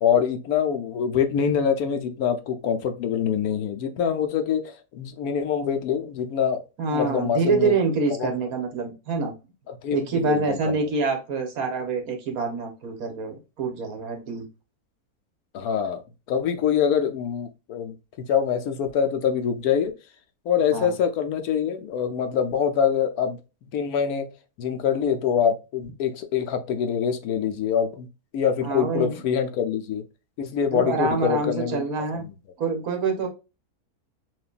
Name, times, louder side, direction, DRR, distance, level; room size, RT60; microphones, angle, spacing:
voice 1, 0.0-6.6 6.9-7.7 8.2-8.3 9.8-10.8 15.5-16.0 16.3-17.9 18.3-19.9 20.5-23.4 23.7-24.3 24.6-28.1 28.3-30.0 30.4-31.8, left 7 dB, 75° left, 1.2 m, -24 dB
voice 2, 6.8-9.3 9.9-14.5 20.7-20.9 28.6-29.2 30.7-32.3 32.6-33.3, right 4 dB, 65° right, 1.6 m, -26 dB
6.2 x 2.6 x 2.4 m
omnidirectional pair, 1.7 m